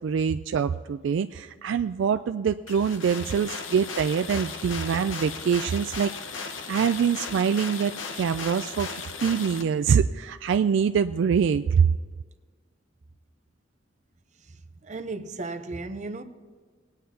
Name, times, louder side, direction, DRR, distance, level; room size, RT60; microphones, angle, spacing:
voice 1, 0.0-6.1 6.4-8.9 9.2-11.9, right 7 dB, 70° right, 0.3 m, -24 dB
sound 1, 2.7-9.6, left 5 dB, 90° left, 1.0 m, -36 dB
voice 2, 14.8-16.2, right 3 dB, 40° right, 0.7 m, -35 dB
21.0 x 9.3 x 2.7 m
head